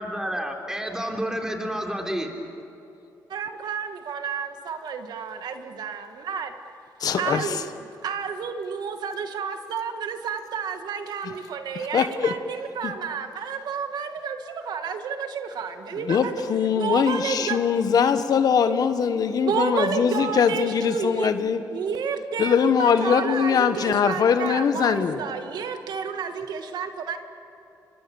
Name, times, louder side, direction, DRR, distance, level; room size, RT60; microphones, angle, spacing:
voice 1, 0.0-2.3, equal, 10° right, 2 dB, 3.7 m, -29 dB
voice 2, 3.3-6.5 7.2-7.6 8.0-16.4 16.7-17.6 19.4-21.3 21.7-27.2, right 6 dB, 75° right, 6 dB, 1.9 m, -30 dB
voice 3, 7.0-7.6 11.2-11.3 11.7-12.3 12.8-12.9 15.9-21.6 22.4-25.2, left 7 dB, 65° left, 10 dB, 1.4 m, -22 dB
28.5 x 24.5 x 7.2 m, 2.8 s
cardioid pair, 95°, 7 cm